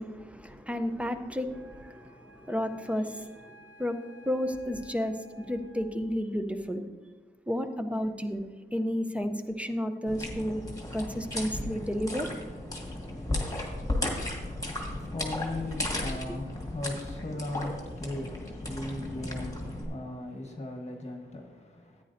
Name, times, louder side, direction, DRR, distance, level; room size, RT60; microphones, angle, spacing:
voice 1, 0.0-3.3 3.8-4.0 4.3-6.8 7.5-8.5 8.7-10.6 10.9-12.3, equal, 5° right, 0.6 m, -32 dB
Wind instrument woodwind instrument, 1.5-6.1, right 1 dB, 65° right, 1.5 m, -55 dB
sound 1, 10.1-19.8, left 1 dB, 15° left, 1.7 m, -35 dB
voice 2, 14.0-22.0, left 2 dB, 30° left, 1.1 m, -38 dB
14.0 x 9.4 x 2.6 m
wide cardioid pair, 160°, 21 cm